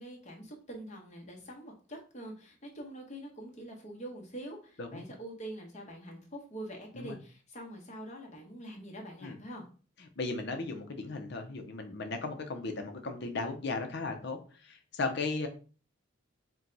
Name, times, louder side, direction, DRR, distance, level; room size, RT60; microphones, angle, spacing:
voice 1, 0.0-9.7, right 1 dB, 35° left, 0 dB, 1.1 m, -45 dB
voice 2, 10.0-15.5, left 3 dB, 60° left, 5 dB, 0.7 m, -36 dB
4.4 x 2.3 x 3.9 m, 0.38 s
head